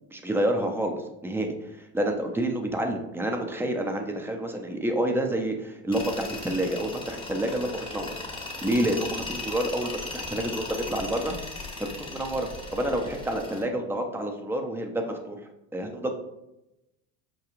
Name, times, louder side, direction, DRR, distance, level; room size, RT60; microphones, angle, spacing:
voice 1, 0.1-8.1 8.6-11.4 11.8-15.4 15.7-16.1, right 1 dB, 5° right, 4 dB, 0.4 m, -29 dB
Tools, 5.9-13.6, left 2 dB, 15° left, 0.8 m, -37 dB
4.9 x 2.3 x 3.0 m, 0.91 s
hypercardioid pair, 85°, 39 cm